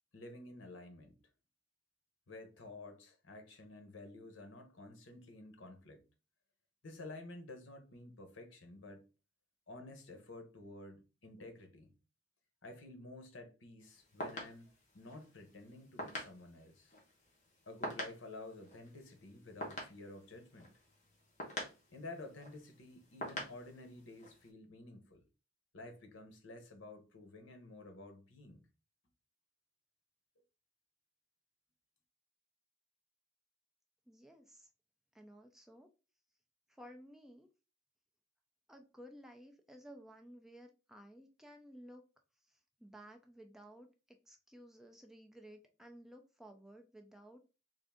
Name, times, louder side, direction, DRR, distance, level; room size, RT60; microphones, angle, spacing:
voice 1, 0.1-1.2 2.3-6.1 6.8-9.1 9.7-11.9 12.6-16.9 17.7-20.7 21.9-25.3 25.7-28.6, left 2 dB, 75° left, 0.9 m, -51 dB
sound 1, 13.8-24.5, left 1 dB, 40° left, 1.2 m, -47 dB
voice 2, 34.1-34.7 35.1-35.9 36.7-37.5 38.7-42.0 42.5-47.4, equal, ahead, 0.5 m, -56 dB
3.7 x 2.5 x 3.5 m
head